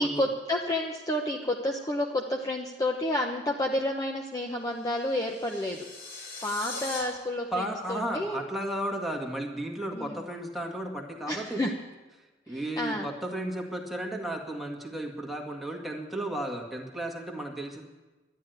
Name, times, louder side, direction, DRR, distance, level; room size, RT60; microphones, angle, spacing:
voice 1, 0.0-5.9 6.4-8.4 9.9-10.2 11.3-11.7 12.5-13.1, left 1 dB, 20° left, 0 dB, 0.9 m, -30 dB
sound 1, 4.4-7.0, left 3 dB, 65° left, 5.0 m, -41 dB
voice 2, 7.5-11.6 12.5-17.8, right 1 dB, ahead, -1 dB, 1.9 m, -34 dB
12.0 x 10.5 x 9.2 m, 1.2 s
head